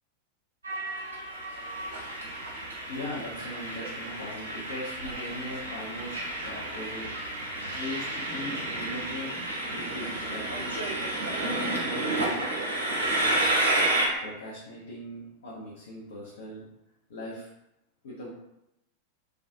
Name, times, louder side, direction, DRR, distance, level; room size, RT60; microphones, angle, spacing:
Train, 0.6-14.1, right 1 dB, 75° right, 0.6 m, -31 dB
voice 1, 2.0-12.6 14.2-16.7 17.1-17.5 18.0-18.3, left 1 dB, 60° left, -6 dB, 0.6 m, -40 dB
2.3 x 2.3 x 2.6 m, 0.85 s
figure-of-eight pair, 90°, 0 cm